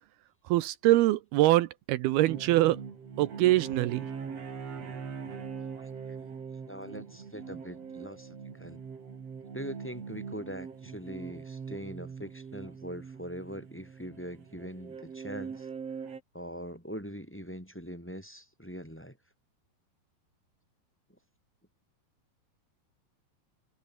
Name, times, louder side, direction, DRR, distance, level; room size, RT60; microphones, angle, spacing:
voice 1, 0.5-2.8 3.2-4.1, right 16 dB, 80° right, 2.8 m, -24 dB
sound 1, 2.3-16.2, right 6 dB, 40° right, 3.8 m, -42 dB
voice 2, 5.8-6.1 6.7-8.8 9.5-15.7 16.3-19.2, equal, 5° left, 6.4 m, -42 dB
omnidirectional pair, 4.5 m